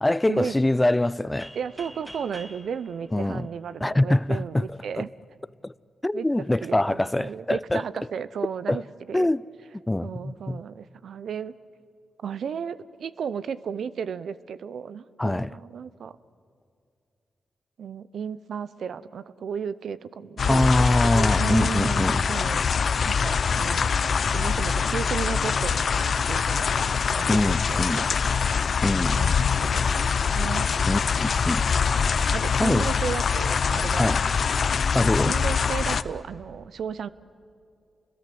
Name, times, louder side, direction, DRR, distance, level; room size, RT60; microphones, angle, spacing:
voice 1, 0.0-1.5 3.1-3.5 3.8-4.7 5.0-5.1 5.6-5.7 6.0-7.8 8.7-8.8 9.1-9.4 9.9-10.6 15.2-15.5 20.5-22.2 27.3-28.0 28.8-29.2 30.9-31.6 32.6-32.9 34.0-34.2 34.9-35.4, left 1 dB, 20° left, 0.5 m, -24 dB
sound 1, 1.4-4.1, equal, 10° right, 4.5 m, -46 dB
voice 2, 1.5-5.1 6.1-6.3 6.6-8.8 9.1-9.3 10.0-11.5 12.2-16.2 17.8-22.7 23.1-23.9 24.3-28.4 29.1-30.7 32.3-34.2 35.2-37.1, right 7 dB, 75° right, 0.7 m, -34 dB
sound 2, 20.4-36.0, left 6 dB, 65° left, 0.6 m, -24 dB
29.0 x 22.0 x 7.7 m
supercardioid pair, 40°, 0 cm